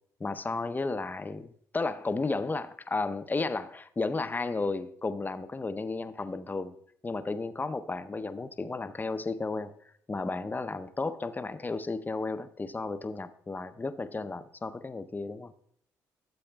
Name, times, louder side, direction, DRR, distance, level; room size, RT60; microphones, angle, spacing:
voice 1, 0.2-6.8 7.0-9.8 10.1-15.5, left 3 dB, 20° left, 0.6 m, -33 dB
13.0 x 7.8 x 2.3 m
hypercardioid pair, 50°, 8 cm